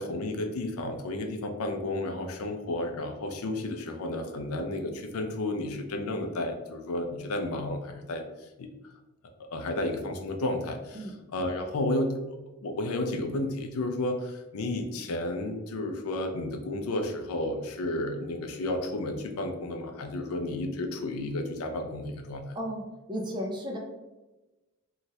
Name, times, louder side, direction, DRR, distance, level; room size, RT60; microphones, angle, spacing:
voice 1, 0.0-8.2 8.6-8.7 9.5-11.1 11.3-12.2 12.6-22.6, left 1 dB, 85° left, 5 dB, 0.4 m, -32 dB
voice 2, 23.1-23.8, equal, 20° right, 0 dB, 0.5 m, -33 dB
3.0 x 2.3 x 2.7 m, 1.1 s
head